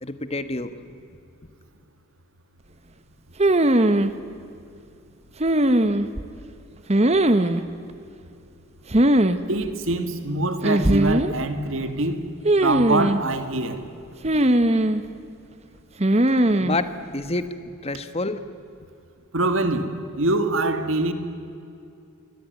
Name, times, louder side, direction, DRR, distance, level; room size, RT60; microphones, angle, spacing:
voice 1, 0.0-0.8 16.4-17.5 17.8-18.4, left 2 dB, 30° left, 1.4 m, -28 dB
sound 1, 3.4-4.1 5.4-6.2 6.9-7.6 8.9-9.4 9.6-9.7 10.6-11.3 12.5-13.2 14.2-15.0 16.0-16.8, right 1 dB, 30° right, 1.1 m, -19 dB
voice 2, 9.5-12.2 12.6-13.8 19.3-21.1, right 2 dB, 65° right, 2.3 m, -24 dB
28.0 x 22.5 x 9.4 m
head